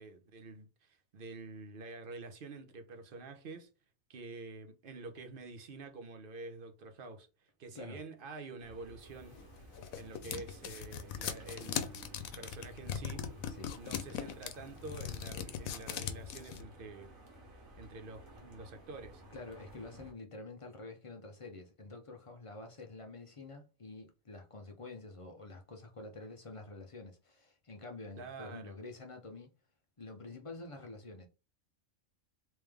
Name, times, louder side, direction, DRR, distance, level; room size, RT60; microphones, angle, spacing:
voice 1, 0.0-3.7 4.1-7.3 7.6-9.4 10.0-13.2 13.8-17.1 17.8-19.2 28.2-28.8, right 3 dB, 50° right, 0.8 m, -48 dB
sound 1, 8.6-20.1, equal, 80° right, 1.5 m, -54 dB
sound 2, 9.4-16.6, left 9 dB, 90° left, 1.0 m, -39 dB
voice 2, 19.3-29.5 30.0-31.3, left 2 dB, 50° left, 0.4 m, -48 dB
3.4 x 3.1 x 3.4 m
omnidirectional pair, 1.4 m